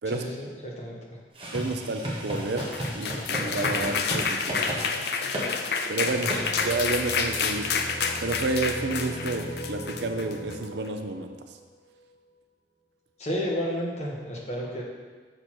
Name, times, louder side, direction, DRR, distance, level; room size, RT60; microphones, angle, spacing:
voice 1, 0.1-0.5 0.8-1.0 13.2-14.8, equal, 40° left, -3 dB, 1.3 m, -31 dB
sound 1, 1.3-4.2 4.5-4.8 5.3-5.5 6.3-6.5, equal, 30° right, 1.5 m, -33 dB
voice 2, 1.5-2.7 2.9-4.9 5.9-6.3 6.6-7.7 8.2-11.4, right 3 dB, 70° right, 6 dB, 0.6 m, -30 dB
sound 2, 2.4-10.6, left 5 dB, 60° left, 0.5 m, -29 dB
sound 3, 6.0-12.1, equal, 5° left, 1.6 m, -38 dB
6.7 x 6.0 x 4.4 m, 1.5 s
head